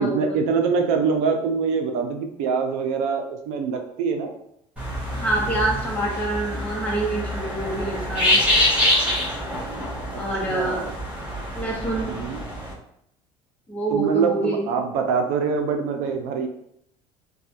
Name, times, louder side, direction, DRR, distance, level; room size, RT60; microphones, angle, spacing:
voice 1, 0.0-4.4 10.1-10.2 10.5-10.9 12.0-12.4 13.9-16.5, right 5 dB, 70° right, 5 dB, 0.6 m, -24 dB
sound 1, 4.8-12.7, left 1 dB, 10° right, 1.4 m, -25 dB
voice 2, 5.1-8.4 10.2-10.8 11.5-12.2 13.7-14.7, right 2 dB, 10° left, -3 dB, 1.0 m, -26 dB
3.3 x 2.3 x 2.9 m, 0.75 s
cardioid pair, 135°, 13 cm